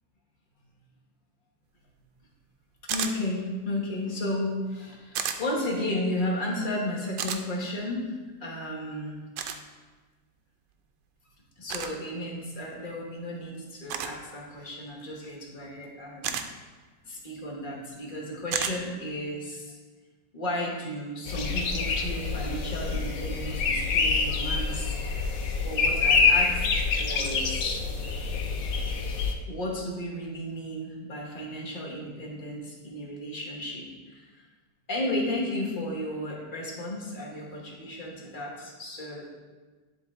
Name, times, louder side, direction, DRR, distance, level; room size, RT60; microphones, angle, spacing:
voice 1, 2.9-9.2 11.6-16.4 17.0-19.8 20.3-24.9 25.6-26.6 26.9-27.8 29.5-34.4 34.9-39.3, left 1 dB, 30° left, -2 dB, 1.2 m, -33 dB
sound 1, 2.9-3.1 5.1-5.4 7.2-7.4 9.4-9.6 11.7-11.9 13.9-14.2 16.2-16.5 18.5-18.8, right 8 dB, 80° right, 1.2 m, -30 dB
sound 2, 21.3-29.3, left 4 dB, 90° left, 1.4 m, -26 dB
10.5 x 3.6 x 3.6 m, 1.3 s
omnidirectional pair, 1.9 m